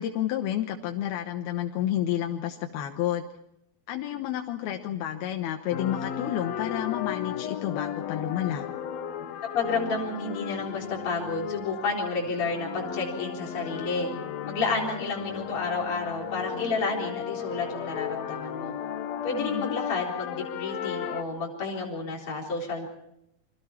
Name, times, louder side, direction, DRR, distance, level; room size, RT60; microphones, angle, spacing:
voice 1, 0.0-3.3 3.9-8.7 19.4-19.8, left 11 dB, 85° left, 3 dB, 3.1 m, -30 dB
sound 1, 5.7-21.2, left 9 dB, 65° left, 1.9 m, -35 dB
voice 2, 9.5-14.1 14.4-18.8 19.2-22.9, left 3 dB, 35° left, -2 dB, 4.6 m, -30 dB
29.5 x 23.5 x 4.5 m, 0.79 s
omnidirectional pair, 4.3 m